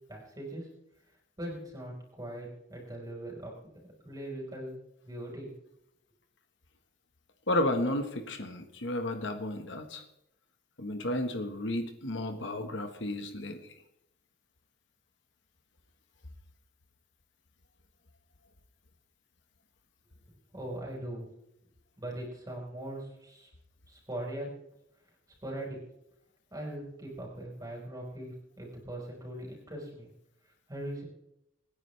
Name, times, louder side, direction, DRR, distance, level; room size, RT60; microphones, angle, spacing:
voice 1, 0.1-0.7 1.4-3.5 4.0-4.8 5.0-5.5 20.5-21.3 22.0-23.5 23.9-24.5 25.4-25.8 26.5-30.1 30.7-31.0, right 1 dB, 20° right, -2 dB, 4.9 m, -40 dB
voice 2, 7.5-10.0 10.8-13.6, left 1 dB, 65° left, 6 dB, 1.5 m, -32 dB
26.0 x 10.0 x 3.4 m, 0.82 s
head